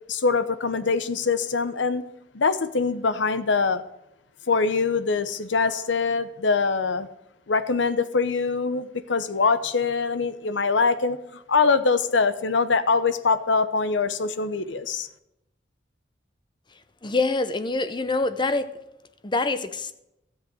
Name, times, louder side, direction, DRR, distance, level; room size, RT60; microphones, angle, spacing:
voice 1, 0.1-2.0 2.3-3.8 4.5-7.1 7.5-11.2 11.5-15.1, left 4 dB, 75° left, 0.8 m, -23 dB
voice 2, 17.0-18.7 19.2-19.9, left 3 dB, 25° left, 0.7 m, -25 dB
13.5 x 7.6 x 6.2 m
head